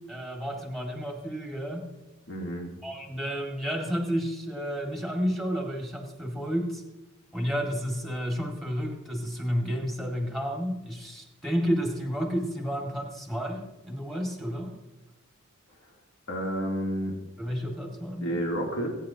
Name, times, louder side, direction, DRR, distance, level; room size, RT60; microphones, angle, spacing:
voice 1, 0.1-1.8 2.8-6.8 7.3-14.7 17.4-18.4, equal, ahead, 0 dB, 2.0 m, -31 dB
voice 2, 2.3-2.7 16.3-17.2 18.2-18.9, right 1 dB, 80° left, -1 dB, 3.0 m, -30 dB
19.0 x 9.5 x 2.9 m, 1.0 s
head